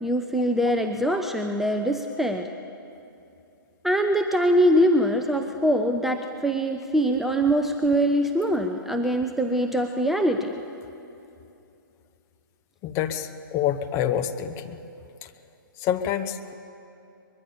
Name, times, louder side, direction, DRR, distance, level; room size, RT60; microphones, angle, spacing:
voice 1, 0.0-2.5 3.8-10.6, equal, ahead, 5 dB, 0.6 m, -23 dB
voice 2, 12.8-14.8 15.8-16.5, left 10 dB, 25° left, 7 dB, 1.0 m, -27 dB
23.0 x 21.5 x 7.0 m, 2.7 s
figure-of-eight pair, 120°, 12 cm